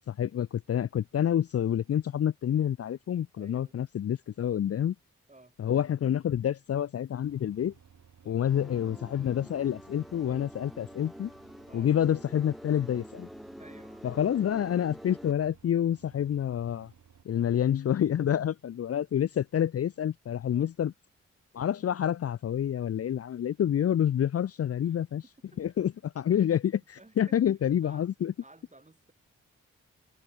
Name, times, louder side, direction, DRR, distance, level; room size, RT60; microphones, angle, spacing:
voice 1, 0.1-4.9 5.6-7.7 8.3-11.3 11.7-13.3 14.0-16.9 17.3-20.9 21.5-25.2 25.6-28.3, left 10 dB, 50° left, 0.5 m, -28 dB
voice 2, 3.4-3.8 5.3-5.6 8.2-8.5 11.7-11.9 13.6-14.1 17.3-17.6 20.5-20.7 21.8-21.9 24.6-25.6 26.7-27.4 27.8-28.1 28.4-29.1, right 2 dB, 25° right, 6.2 m, -56 dB
sound 1, 7.2-17.2, right 7 dB, 70° right, 5.8 m, -58 dB
sound 2, 8.5-15.3, equal, ahead, 0.7 m, -47 dB
supercardioid pair, 45°, 30 cm